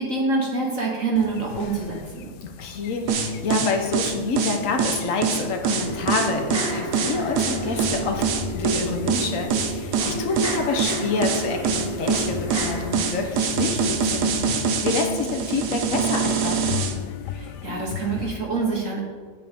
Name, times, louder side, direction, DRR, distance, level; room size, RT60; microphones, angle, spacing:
voice 1, 0.0-2.3 17.3-19.0, right 3 dB, 55° right, -2 dB, 1.5 m, -26 dB
sound 1, 1.2-18.4, left 8 dB, 90° left, 1.2 m, -38 dB
voice 2, 2.4-16.8, left 4 dB, 55° left, 4 dB, 1.2 m, -28 dB
sound 2, 3.1-16.9, right 6 dB, 80° right, 1.3 m, -24 dB
sound 3, 5.7-15.7 16.1-16.2, equal, 25° left, 1.9 m, -33 dB
8.5 x 7.8 x 3.6 m, 1.5 s
omnidirectional pair, 1.7 m